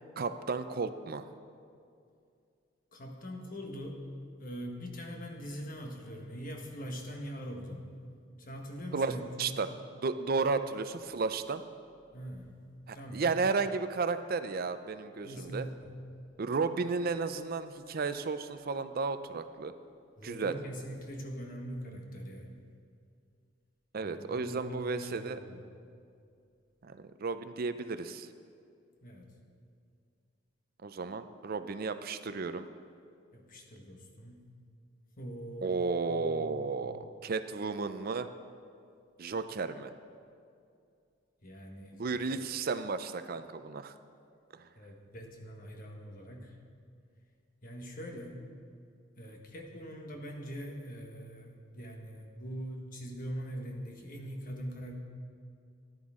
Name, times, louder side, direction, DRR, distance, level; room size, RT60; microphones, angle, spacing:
voice 1, 0.2-1.3 8.9-9.7 10.0-11.6 12.9-15.7 16.4-19.7 20.2-20.6 23.9-25.4 26.8-28.3 30.8-32.7 35.6-38.3 39.2-39.9 41.9-43.9 44.5-44.7, right 4 dB, 50° right, 11 dB, 0.5 m, -33 dB
voice 2, 2.9-4.0 4.4-7.8 8.4-9.6 12.1-12.6 12.9-13.3 15.2-15.9 20.2-22.6 24.0-25.6 29.0-29.3 33.3-34.4 35.2-36.9 41.4-42.0 42.3-42.4 44.7-46.6 47.6-48.4 49.2-55.0, equal, 45° left, 1 dB, 1.4 m, -42 dB
13.5 x 10.5 x 3.7 m, 2.4 s
head